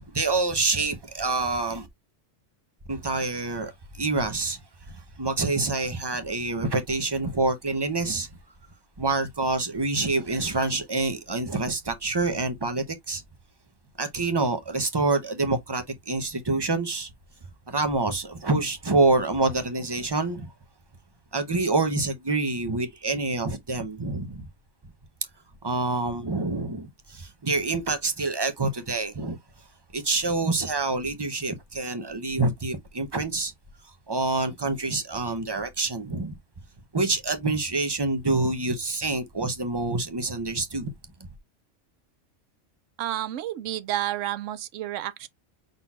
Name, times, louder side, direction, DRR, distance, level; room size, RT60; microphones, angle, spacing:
voice 1, 0.1-1.9 2.9-4.6 4.9-8.3 9.0-13.2 14.0-17.1 17.7-20.5 21.3-24.5 25.6-29.4 29.9-33.5 34.1-36.4 36.9-40.9, right 3 dB, 25° right, 0.6 m, -27 dB
voice 2, 43.0-45.3, right 13 dB, 80° right, 0.9 m, -30 dB
5.7 x 4.0 x 2.3 m
omnidirectional pair, 1.3 m